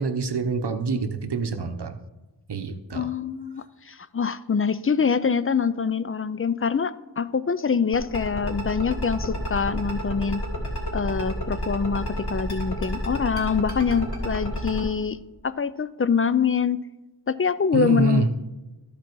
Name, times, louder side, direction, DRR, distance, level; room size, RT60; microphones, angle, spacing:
voice 1, 0.0-1.9 2.5-3.1 17.7-18.3, right 4 dB, 65° right, 8 dB, 0.9 m, -26 dB
voice 2, 2.9-10.4 10.9-15.2 15.4-16.8 17.3-18.3, left 6 dB, 35° left, 15 dB, 0.4 m, -25 dB
sound 1, 7.9-14.8, left 1 dB, 65° left, 2.9 m, -29 dB
13.0 x 5.0 x 4.6 m, 1.1 s
wide cardioid pair, 60°, 43 cm